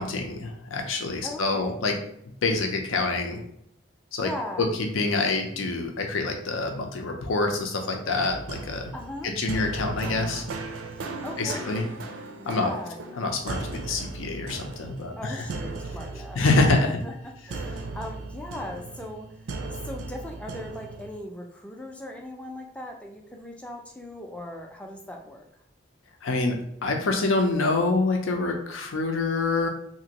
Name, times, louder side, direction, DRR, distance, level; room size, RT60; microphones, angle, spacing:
voice 1, 0.0-2.0 2.4-3.4 4.1-4.3 4.6-4.7 4.9-8.9 9.2-10.4 11.4-11.9 12.5-12.7 13.2-15.4 16.4-17.0 26.2-29.7, left 3 dB, 90° left, 3 dB, 0.6 m, -26 dB
voice 2, 1.2-1.8 4.2-4.7 8.9-9.3 10.9-11.7 12.4-13.0 15.2-17.1 17.5-19.5 19.8-25.5, left 1 dB, 5° left, 1 dB, 0.3 m, -39 dB
sound 1, 8.3-21.2, right 3 dB, 90° right, 0.5 m, -37 dB
2.9 x 2.5 x 2.9 m, 0.74 s
head